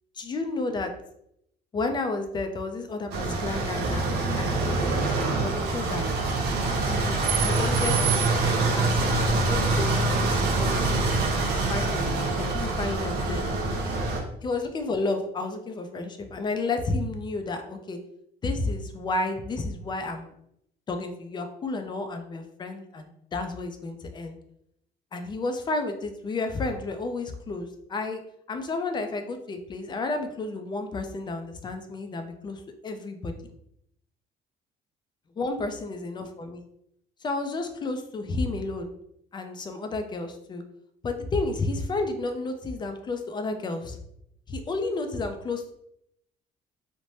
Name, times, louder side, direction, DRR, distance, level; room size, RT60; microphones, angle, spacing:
voice 1, 0.1-0.9 1.7-6.1 6.9-11.2 11.4-12.1 12.4-13.4 14.4-18.0 18.4-20.3 20.9-24.4 25.1-28.2 28.5-33.3 35.4-36.6 37.2-38.9 39.3-40.6 41.0-44.0 44.5-45.7, left 3 dB, 25° left, 6 dB, 0.4 m, -31 dB
sound 1, 3.1-14.2, right 3 dB, 75° right, 0.7 m, -25 dB
2.7 x 2.1 x 3.1 m, 0.77 s
cardioid pair, 110°, 17 cm